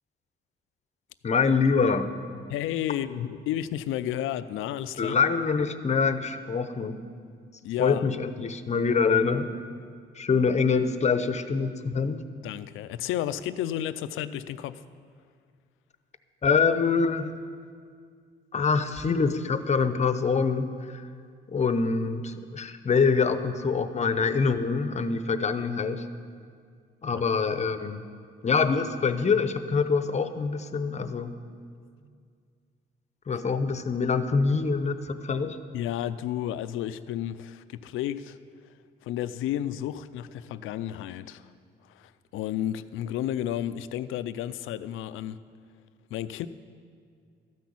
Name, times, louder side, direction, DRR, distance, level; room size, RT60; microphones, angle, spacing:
voice 1, 1.2-2.1 5.0-7.0 7.8-9.5 10.2-12.2 16.4-17.3 18.5-21.1 21.5-26.1 27.0-28.1 28.4-31.3 33.3-35.6, left 5 dB, 35° left, 10 dB, 0.8 m, -25 dB
voice 2, 2.5-5.2 7.6-8.5 12.4-14.8 35.7-38.4 39.0-41.5 41.9-45.4 46.1-46.5, left 11 dB, 85° left, 13 dB, 0.5 m, -32 dB
13.5 x 6.1 x 8.5 m, 2.1 s
cardioid pair, 90°, 20 cm